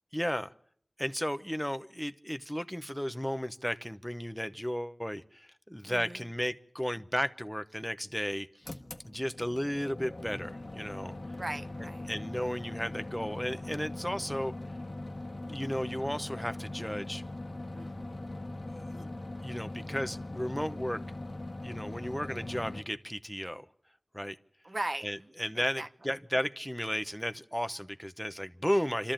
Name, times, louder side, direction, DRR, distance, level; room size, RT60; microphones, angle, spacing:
voice 1, 0.1-0.5 1.0-8.7 9.0-11.1 12.1-14.5 15.5-17.2 18.6-19.1 19.4-21.0 21.6-23.7 24.1-24.4 25.0-29.1, equal, 5° left, 11 dB, 0.9 m, -34 dB
voice 2, 5.9-6.2 11.4-12.1 17.7-18.2 24.6-25.1 25.5-25.9, right 1 dB, 55° right, 9 dB, 0.9 m, -38 dB
sound 1, 8.6-22.8, left 2 dB, 65° left, 1.2 m, -41 dB
27.5 x 13.5 x 9.0 m, 0.65 s
wide cardioid pair, 55°, 0 cm